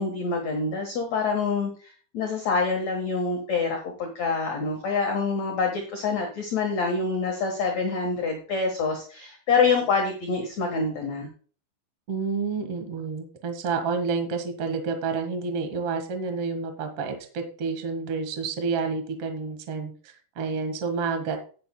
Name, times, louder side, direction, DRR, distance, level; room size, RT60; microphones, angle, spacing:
voice 1, 0.0-11.3, left 4 dB, 60° left, 1 dB, 1.9 m, -26 dB
voice 2, 12.1-21.5, right 5 dB, 55° right, 5 dB, 1.6 m, -29 dB
18.0 x 7.5 x 2.2 m, 0.40 s
omnidirectional pair, 5.3 m